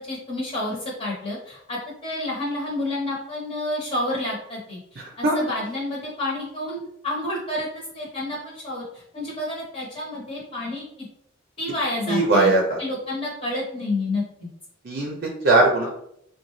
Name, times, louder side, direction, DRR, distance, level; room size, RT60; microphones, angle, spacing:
voice 1, 0.0-10.8 11.6-12.5 12.8-14.5, left 2 dB, 35° left, -4 dB, 1.0 m, -29 dB
voice 2, 12.1-12.8 14.9-15.9, right 2 dB, 55° right, 0 dB, 0.5 m, -19 dB
3.9 x 2.2 x 3.0 m, 0.74 s
head